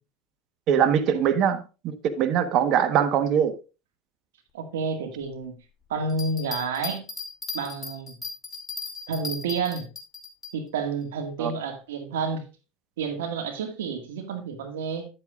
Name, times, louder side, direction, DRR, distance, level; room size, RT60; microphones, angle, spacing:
voice 1, 0.7-3.5 11.4-11.5, right 8 dB, 55° right, 1.2 m, -22 dB
voice 2, 4.5-5.6 5.9-7.0 7.5-8.2 9.1-9.9 10.5-12.4 13.0-15.1, right 4 dB, 90° right, 1.9 m, -30 dB
sound 1, 6.1-10.5, left 4 dB, 20° left, 2.7 m, -36 dB
10.5 x 8.5 x 2.4 m
supercardioid pair, 100°, 0 cm